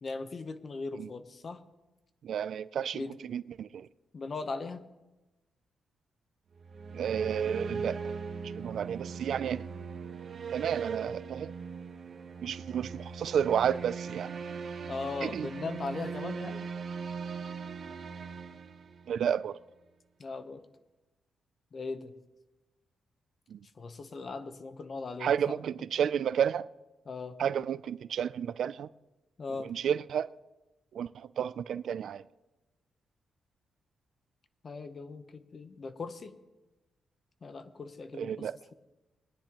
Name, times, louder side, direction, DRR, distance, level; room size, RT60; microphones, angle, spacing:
voice 1, 0.0-1.6 2.9-3.1 4.1-4.8 8.7-8.8 14.9-16.7 20.2-20.6 21.7-22.1 23.8-25.6 27.1-27.4 29.4-29.7 34.6-36.3 37.4-38.7, left 3 dB, 40° left, 0.8 m, -39 dB
voice 2, 2.2-3.9 6.9-8.0 8.4-9.7 10.5-11.5 12.4-14.3 15.2-15.5 19.1-19.6 23.5-23.6 25.2-26.7 27.4-28.9 29.6-30.3 30.9-32.2 38.2-38.5, right 8 dB, 70° right, 0.3 m, -31 dB
sound 1, 6.6-19.4, right 5 dB, 50° right, 0.9 m, -39 dB
21.0 x 10.0 x 2.9 m
cardioid pair, 115°, 0 cm